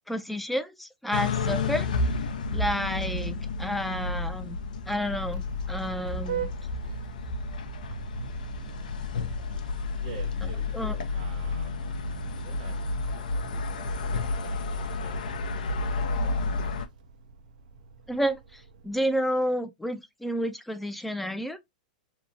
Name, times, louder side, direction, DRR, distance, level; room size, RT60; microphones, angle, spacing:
voice 1, 0.1-1.9 2.5-4.6 4.9-5.4 5.7-6.5 10.7-11.0 18.1-21.6, equal, ahead, 0.4 m, -30 dB
sound 1, 1.1-16.9, left 3 dB, 90° left, 0.5 m, -31 dB
Vehicle horn car horn honking, 4.1-19.3, right 5 dB, 80° right, 0.5 m, -43 dB
voice 2, 10.0-11.7 12.3-12.8 13.1-13.9 14.2-16.7, right 6 dB, 55° right, 1.0 m, -49 dB
2.8 x 2.3 x 2.5 m
hypercardioid pair, 135°, 4 cm